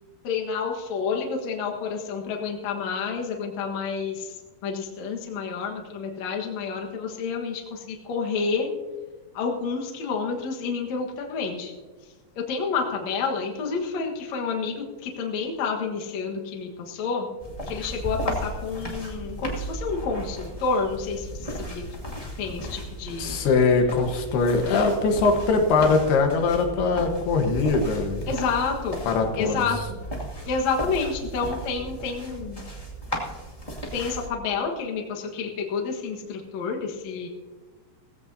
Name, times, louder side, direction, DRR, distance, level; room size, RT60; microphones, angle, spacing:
voice 1, 0.2-4.3 4.6-8.7 9.3-11.7 12.5-17.3 17.7-21.3 21.6-21.8 22.4-23.4 28.3-29.0 29.4-30.0 30.5-32.6 33.9-37.3, left 5 dB, 55° left, 1 dB, 2.3 m, -29 dB
sound 1, 17.4-34.3, right 1 dB, 15° left, 1.4 m, -35 dB
voice 2, 23.2-28.3 29.0-29.9, left 4 dB, 85° left, 4 dB, 3.4 m, -22 dB
18.0 x 15.5 x 2.8 m, 1.3 s
omnidirectional pair, 4.5 m